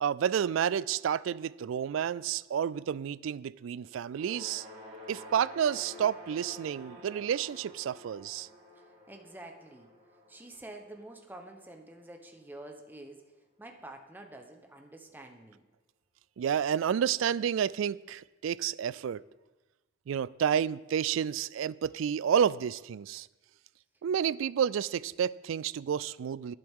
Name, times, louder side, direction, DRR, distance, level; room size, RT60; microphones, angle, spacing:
voice 1, 0.0-4.7 5.1-8.5 16.4-19.2 20.1-23.3 24.0-26.5, right 8 dB, 80° right, 0.3 m, -30 dB
sound 1, 4.0-12.3, left 1 dB, 40° right, 3.3 m, -50 dB
voice 2, 8.7-9.9 10.3-13.2 13.6-15.6, right 1 dB, 10° right, 1.0 m, -48 dB
19.0 x 7.7 x 3.7 m
head